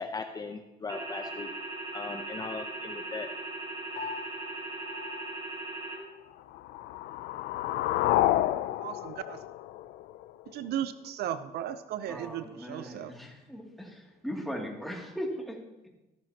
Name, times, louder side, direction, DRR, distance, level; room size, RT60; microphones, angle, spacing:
voice 1, 0.0-1.5 1.9-3.3, left 4 dB, 25° left, 6 dB, 0.7 m, -38 dB
sound 1, 0.9-6.0, right 2 dB, 30° right, 4.8 m, -39 dB
Piano, 4.0-6.5, left 5 dB, 50° left, 3.9 m, -44 dB
sound 2, 6.5-10.5, left 14 dB, 80° left, 0.5 m, -29 dB
voice 2, 8.8-9.4 10.5-13.1, right 10 dB, 70° right, 12 dB, 0.6 m, -36 dB
voice 3, 12.1-15.6, equal, ahead, -1 dB, 2.5 m, -38 dB
13.5 x 12.5 x 2.9 m, 1.0 s
cardioid pair, 110°, 17 cm